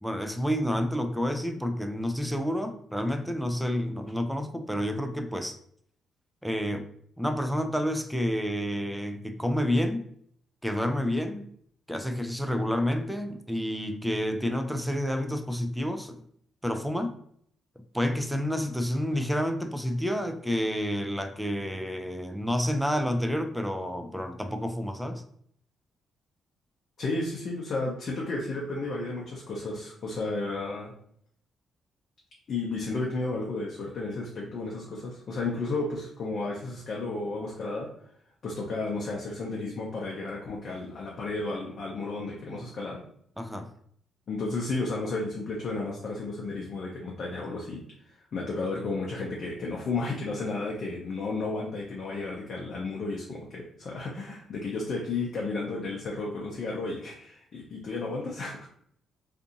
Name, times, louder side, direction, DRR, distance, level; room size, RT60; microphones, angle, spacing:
voice 1, 0.0-5.6 6.4-6.9 7.2-10.1 10.6-11.5 11.9-16.2 16.6-17.1 17.9-25.2 43.4-43.7, equal, ahead, 7 dB, 0.4 m, -29 dB
voice 2, 27.0-30.9 32.5-37.9 38.4-43.0 44.3-58.7, left 3 dB, 60° left, -2 dB, 0.5 m, -33 dB
2.6 x 2.5 x 2.4 m, 0.66 s
hypercardioid pair, 50°, 0 cm